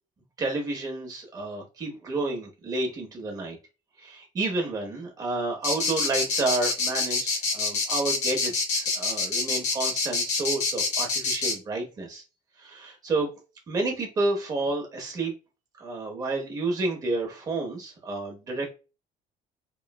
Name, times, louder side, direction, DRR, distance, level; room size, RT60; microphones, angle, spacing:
voice 1, 0.4-3.6 4.0-12.2 12.6-13.3 13.7-15.3 15.8-18.8, right 2 dB, 25° right, 1 dB, 0.8 m, -30 dB
sound 1, 5.6-11.5, left 4 dB, 50° left, 0.7 m, -26 dB
3.0 x 2.1 x 2.2 m, 0.30 s
cardioid pair, 180°, 15 cm